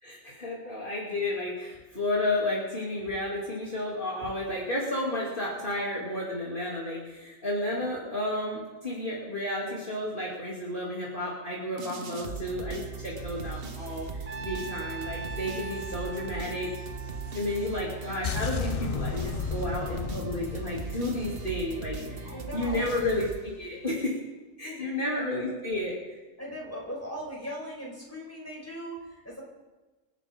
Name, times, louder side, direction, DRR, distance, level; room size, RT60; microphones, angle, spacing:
voice 1, 0.0-16.7 17.3-24.2 24.6-25.9, left 1 dB, 40° left, -6 dB, 3.0 m, -32 dB
sound 1, 11.8-23.9, right 4 dB, 45° right, 1.2 m, -39 dB
Trumpet, 14.3-18.5, right 3 dB, 80° right, 1.8 m, -42 dB
sound 2, 18.2-22.3, left 7 dB, 55° left, 0.4 m, -34 dB
voice 2, 22.0-22.9 24.6-24.9 25.1-25.6 26.4-29.4, equal, 10° left, -3 dB, 4.9 m, -40 dB
28.0 x 11.0 x 3.7 m, 1.2 s
omnidirectional pair, 1.4 m